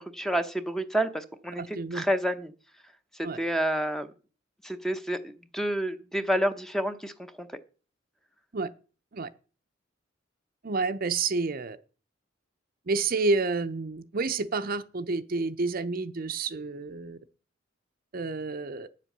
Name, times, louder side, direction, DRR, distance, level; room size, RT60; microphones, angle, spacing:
voice 1, 0.0-2.5 3.4-4.1 4.6-7.5, right 1 dB, ahead, 0.7 m, -29 dB
voice 2, 1.6-2.0 3.2-3.4 8.5-8.7 9.1-9.3 10.6-11.8 12.9-17.2 18.1-18.9, right 3 dB, 50° right, 0.6 m, -29 dB
8.8 x 7.6 x 6.6 m
head